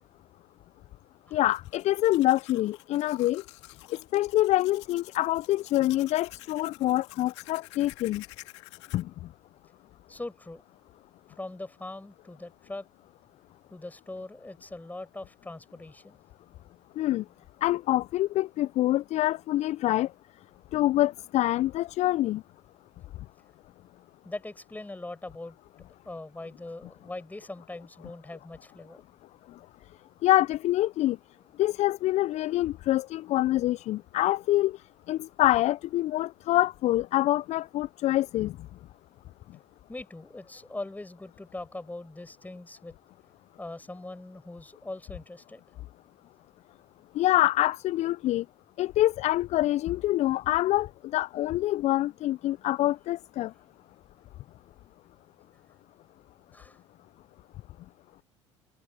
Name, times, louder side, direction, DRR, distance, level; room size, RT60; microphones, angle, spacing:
Domestic sounds home sounds, 1.3-9.0, left 21 dB, 70° left, 2.6 m, -50 dB
voice 1, 1.3-3.4 3.9-8.2 8.9-9.1 17.0-17.2 17.6-20.1 20.7-22.4 30.2-31.2 31.6-34.8 35.1-38.6 47.1-48.4 48.8-53.5, left 15 dB, 50° left, 0.6 m, -26 dB
voice 2, 10.1-10.6 11.4-12.9 13.7-16.2 16.6-16.7 24.2-25.6 26.0-29.0 39.9-43.0 43.6-45.6 53.5-53.6 56.5-56.8, left 2 dB, 10° left, 7.6 m, -41 dB
hypercardioid pair, 65°, 15 cm